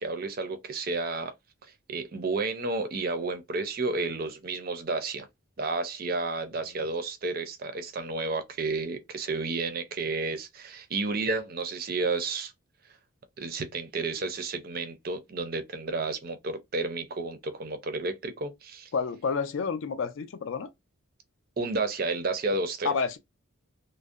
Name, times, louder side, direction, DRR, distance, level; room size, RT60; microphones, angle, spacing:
voice 1, 0.0-1.3 1.6-5.3 5.6-12.5 13.4-18.9 21.6-23.0, right 3 dB, 45° right, 0.4 m, -31 dB
voice 2, 18.9-20.7 22.8-23.2, left 5 dB, 65° left, 0.4 m, -29 dB
2.6 x 2.0 x 2.3 m
head